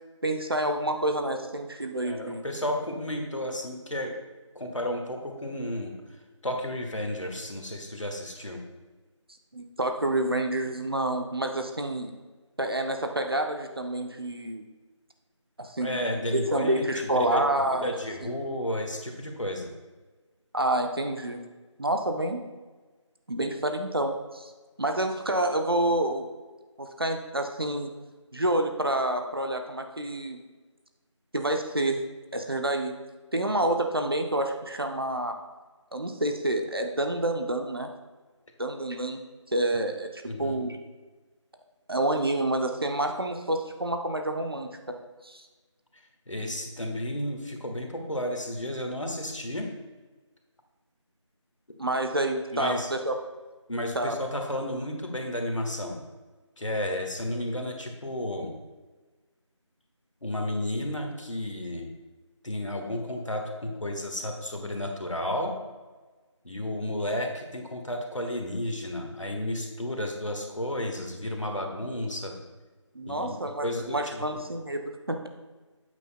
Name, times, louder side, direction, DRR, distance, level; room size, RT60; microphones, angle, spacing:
voice 1, 0.2-2.4 9.5-12.1 12.6-14.6 15.6-17.9 18.2-18.3 20.5-21.4 21.8-22.4 23.3-24.5 24.8-26.3 26.8-27.9 28.3-30.4 31.3-32.0 32.3-33.0 33.3-35.3 35.9-37.9 38.6-39.2 39.5-40.8 41.9-44.9 45.2-45.5 51.8-53.2 53.9-54.2 72.9-75.3, right 1 dB, 50° right, 5 dB, 0.7 m, -28 dB
voice 2, 2.0-4.1 4.5-5.9 6.4-8.6 15.8-19.7 39.7-39.8 40.2-40.6 46.3-49.7 52.5-52.9 53.7-56.0 56.6-58.5 60.2-61.9 62.4-65.5 66.4-72.3 73.1-74.4, left 1 dB, 75° left, 3 dB, 1.5 m, -32 dB
8.8 x 8.4 x 2.2 m, 1.3 s
figure-of-eight pair, 170°, 16 cm